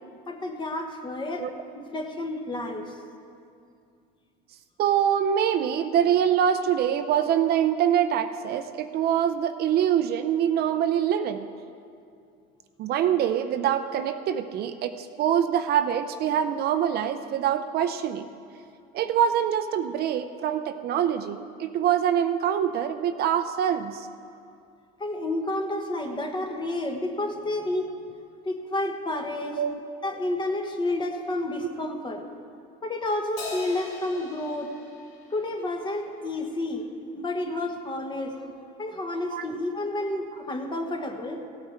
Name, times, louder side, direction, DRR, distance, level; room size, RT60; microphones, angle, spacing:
voice 1, 0.3-1.5 1.7-2.9 25.0-27.9 28.4-29.6 30.0-32.2 32.8-34.7 35.3-36.9 37.1-38.4 38.8-41.4, left 1 dB, 25° left, 4 dB, 1.2 m, -30 dB
voice 2, 4.8-11.5 12.8-18.3 18.9-24.1 29.6-29.8 37.5-37.6 39.3-39.4, right 9 dB, 55° right, 9 dB, 0.6 m, -24 dB
Crash cymbal, 33.4-36.1, left 4 dB, 75° left, 3.3 m, -41 dB
16.0 x 8.7 x 4.4 m, 2.4 s
cardioid pair, 125°, 20 cm